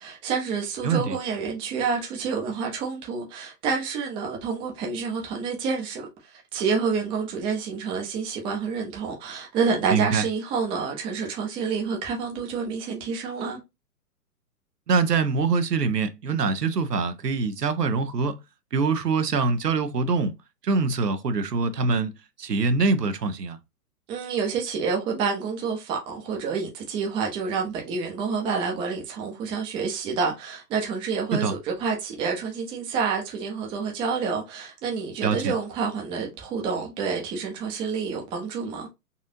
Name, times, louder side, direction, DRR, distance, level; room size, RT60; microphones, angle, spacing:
voice 1, 0.0-13.6 24.1-38.9, right 5 dB, 10° right, 0.6 m, -28 dB
voice 2, 0.8-1.2 9.9-10.2 14.9-18.4 18.7-20.3 20.6-22.1 22.4-23.6 31.3-31.5 35.2-35.5, right 4 dB, 90° right, 0.8 m, -24 dB
4.1 x 2.5 x 2.7 m
hypercardioid pair, 125°, 46 cm